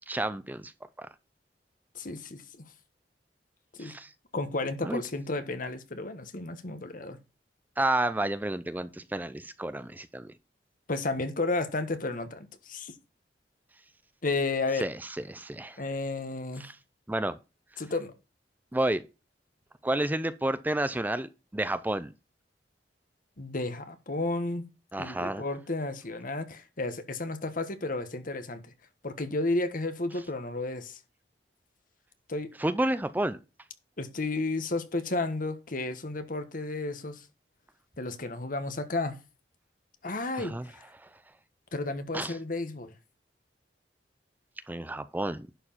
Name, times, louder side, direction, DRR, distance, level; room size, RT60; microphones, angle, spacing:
voice 1, 0.1-0.7 1.0-1.1 3.8-4.1 4.8-5.0 7.8-10.3 14.8-15.8 16.6-16.8 17.1-17.4 17.7-17.8 18.7-19.0 19.8-22.1 24.9-25.4 32.6-33.4 40.3-40.7 40.9-41.1 42.1-42.4 44.7-45.5, right 1 dB, 10° right, 0.5 m, -30 dB
voice 2, 1.9-2.6 3.7-3.9 4.3-7.2 10.9-12.9 14.2-14.9 15.8-16.6 17.8-18.1 23.4-24.7 25.0-28.7 29.0-31.0 32.3-32.5 34.0-37.2 38.0-39.2 40.0-40.8 41.7-42.9, left 2 dB, 50° left, 1.5 m, -32 dB
11.0 x 4.8 x 5.7 m
head